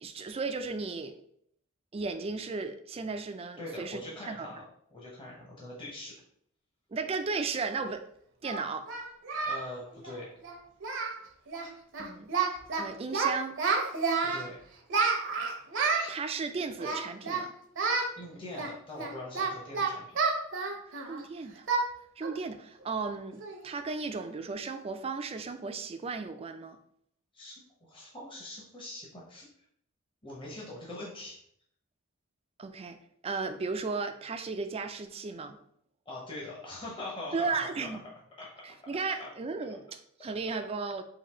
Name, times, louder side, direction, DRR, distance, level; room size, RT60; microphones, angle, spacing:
voice 1, 0.0-1.2 1.9-4.0 4.3-4.5 6.9-8.1 8.4-8.9 12.0-12.4 12.8-13.6 16.1-17.5 20.8-21.7 22.2-26.8 32.6-35.6 37.3-38.0 38.6-41.0, right 4 dB, 30° right, 8 dB, 0.4 m, -35 dB
voice 2, 3.6-4.6 4.9-6.1 9.4-10.3 14.2-14.6 18.1-20.1 27.3-27.5 27.8-29.5 30.2-31.4 36.1-37.5 37.8-37.9 38.4-38.5 39.2-39.3, left 2 dB, 25° left, -4 dB, 0.9 m, -42 dB
Singing, 7.6-7.7 8.4-9.7 9.9-10.1 10.4-10.6 10.8-11.2 11.5-11.7 11.9-12.8 13.1-14.4 14.9-16.1 16.8-17.4 17.8-18.1 18.6-21.2 21.7-21.9 22.2-22.4 22.8-22.9 23.4-23.7, right 4 dB, 60° right, 0.8 m, -30 dB
3.8 x 2.7 x 4.2 m, 0.69 s
head